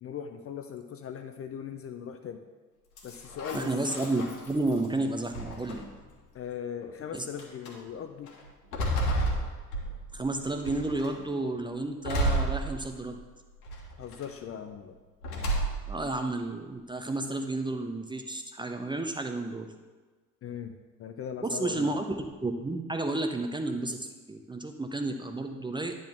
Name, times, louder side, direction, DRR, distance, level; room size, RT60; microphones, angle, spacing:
voice 1, 0.0-2.4 3.0-3.7 6.3-8.3 14.0-15.0 20.4-22.0, left 8 dB, 30° left, 7 dB, 0.6 m, -39 dB
sound 1, 3.0-4.9 5.3-6.1 6.8-6.9 7.4-7.7 8.3-10.2 10.7-11.2 12.0-13.2 13.7-14.3 15.2-16.0, right 1 dB, 70° left, 1.4 m, -31 dB
voice 2, 3.5-5.8 7.1-7.2 10.1-13.2 15.9-19.7 21.4-25.9, right 2 dB, 10° right, 5 dB, 0.6 m, -31 dB
10.0 x 3.9 x 6.5 m, 1.3 s
figure-of-eight pair, 55°, 47 cm